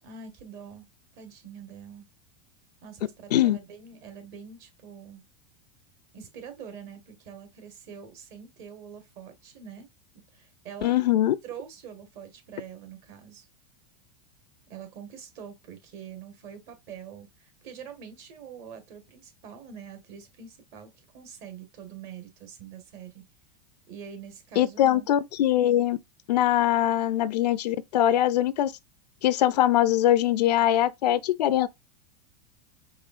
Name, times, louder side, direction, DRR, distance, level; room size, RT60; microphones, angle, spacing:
voice 1, 0.0-0.9 1.1-2.1 2.8-5.2 6.1-9.9 10.3-10.9 11.4-13.5 14.7-23.2 23.9-25.1, right 7 dB, 55° right, 1.6 m, -44 dB
voice 2, 10.8-11.4 24.6-26.0 26.3-28.7 29.2-31.7, left 12 dB, 80° left, 0.4 m, -22 dB
4.8 x 3.4 x 2.4 m
hypercardioid pair, 100°, 21 cm